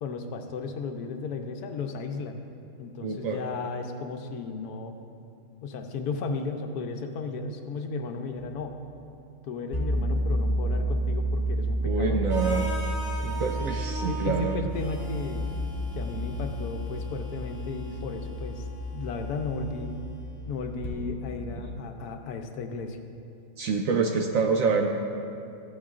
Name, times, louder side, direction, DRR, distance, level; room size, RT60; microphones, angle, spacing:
voice 1, 0.0-2.4 2.8-4.9 5.6-8.8 9.4-12.2 13.2-13.7 14.0-15.5 15.9-18.6 18.9-20.0 20.5-23.0, left 4 dB, 70° left, 5 dB, 1.1 m, -34 dB
voice 2, 3.0-3.4 11.8-12.7 13.4-14.6 23.6-24.9, right 5 dB, 70° right, 3 dB, 0.8 m, -26 dB
sound 1, 9.7-21.7, right 1 dB, 15° left, 1.4 m, -31 dB
Harmonica, 12.3-20.2, equal, 20° right, 0.7 m, -41 dB
14.5 x 8.6 x 2.4 m, 2.6 s
omnidirectional pair, 1.8 m